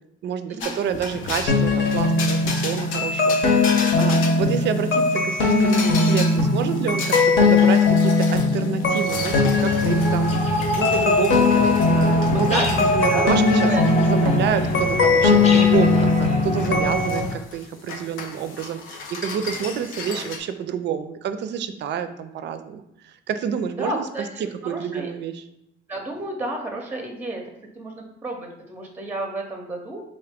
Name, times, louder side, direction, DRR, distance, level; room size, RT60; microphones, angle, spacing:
voice 1, 0.2-13.7 14.0-25.4, right 7 dB, 60° right, 10 dB, 0.4 m, -28 dB
sound 1, 0.6-20.4, left 4 dB, 85° left, 0.5 m, -36 dB
sound 2, 1.5-17.2, left 3 dB, 65° left, 0.8 m, -19 dB
sound 3, 9.1-17.4, left 1 dB, 35° left, 0.6 m, -31 dB
voice 2, 12.2-12.7 13.1-13.3 13.6-13.8 23.8-25.1 25.9-27.4 27.8-30.0, right 1 dB, 10° right, 2 dB, 0.6 m, -31 dB
3.7 x 2.6 x 3.5 m, 0.81 s
cardioid pair, 90°, 20 cm